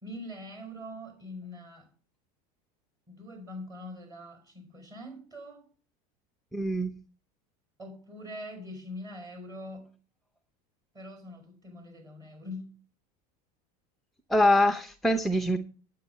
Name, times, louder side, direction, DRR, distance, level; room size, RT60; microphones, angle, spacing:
voice 1, 0.0-1.9 3.1-5.7 7.8-9.9 10.9-12.7, left 1 dB, 20° right, 4.7 m, -43 dB
voice 2, 6.5-7.0 14.3-15.6, left 1 dB, ahead, 0.5 m, -24 dB
9.4 x 8.5 x 5.3 m
supercardioid pair, 140°, 19 cm